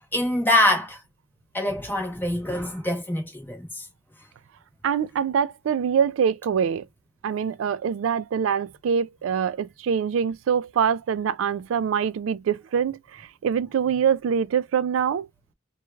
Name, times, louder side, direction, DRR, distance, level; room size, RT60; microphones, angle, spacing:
voice 1, 0.1-1.0 1.5-3.9, left 1 dB, 10° left, 1.0 m, -24 dB
voice 2, 4.8-6.9 7.2-15.3, right 7 dB, 75° right, 0.3 m, -24 dB
3.1 x 2.3 x 2.2 m
head